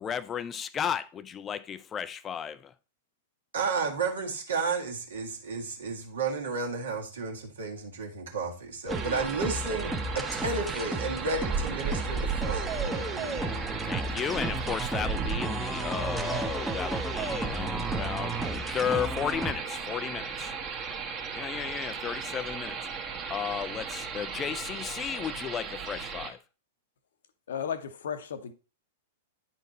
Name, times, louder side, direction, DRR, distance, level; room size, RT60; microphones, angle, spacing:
voice 1, 0.0-2.7 13.9-20.5 21.3-22.8 23.3-26.4, left 8 dB, 25° left, 0.3 m, -34 dB
voice 2, 3.5-13.6, right 4 dB, 65° right, 1.8 m, -32 dB
sound 1, 8.9-19.5, right 2 dB, 5° right, 0.8 m, -34 dB
sound 2, 8.9-26.3, right 5 dB, 30° right, 1.3 m, -35 dB
voice 3, 27.5-28.5, left 7 dB, 65° left, 0.8 m, -34 dB
9.8 x 4.2 x 4.1 m
figure-of-eight pair, 100°, 0 cm